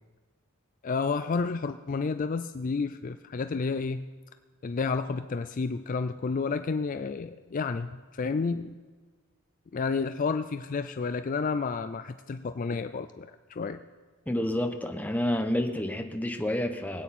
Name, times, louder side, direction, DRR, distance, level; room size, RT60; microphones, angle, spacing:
voice 1, 0.8-4.1 4.6-8.8 9.7-13.8, left 4 dB, 40° left, 10 dB, 0.4 m, -30 dB
voice 2, 14.3-17.0, left 1 dB, 10° left, 5 dB, 0.9 m, -29 dB
22.5 x 9.1 x 4.3 m, 1.3 s
head